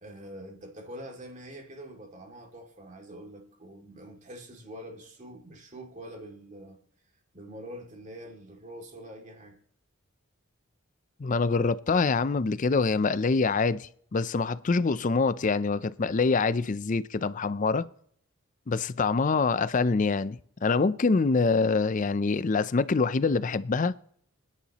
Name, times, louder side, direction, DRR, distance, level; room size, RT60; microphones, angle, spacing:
voice 1, 0.0-6.8 7.3-9.6, equal, 35° right, 2.3 m, -45 dB
voice 2, 11.2-17.9 18.7-23.9, left 4 dB, 40° left, 0.4 m, -25 dB
26.0 x 10.0 x 2.9 m
head